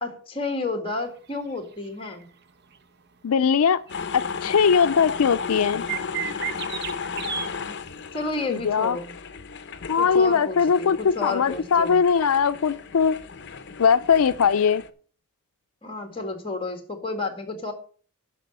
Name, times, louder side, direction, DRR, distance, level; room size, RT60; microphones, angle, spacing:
voice 1, 0.0-2.3 8.1-9.1 10.0-12.0 15.8-17.7, left 3 dB, 25° left, 6 dB, 2.0 m, -31 dB
sound 1, 2.0-2.2 2.7-2.8 3.9-4.0 4.3-4.4 4.7-5.1 5.9-7.5 8.3-8.4, right 9 dB, 50° right, 0.9 m, -32 dB
voice 2, 3.2-3.8 4.1-5.8 8.5-9.0 9.9-13.2 13.8-14.8, left 6 dB, 80° left, 13 dB, 0.5 m, -20 dB
sound 2, 3.9-14.9, left 5 dB, 55° left, 0.8 m, -35 dB
11.0 x 6.1 x 6.6 m, 0.43 s
head